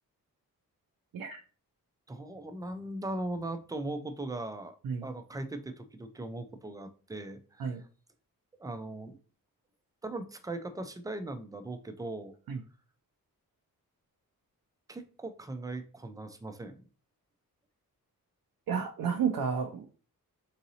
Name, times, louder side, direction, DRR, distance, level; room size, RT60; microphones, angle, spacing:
voice 1, 2.1-4.8 5.0-7.8 8.6-9.2 10.0-12.4 14.9-16.9, right 2 dB, 10° right, 9 dB, 0.4 m, -39 dB
voice 2, 18.7-19.9, right 6 dB, 70° right, 3 dB, 0.5 m, -31 dB
3.8 x 2.7 x 2.7 m, 0.38 s
cardioid pair, 85°, 36 cm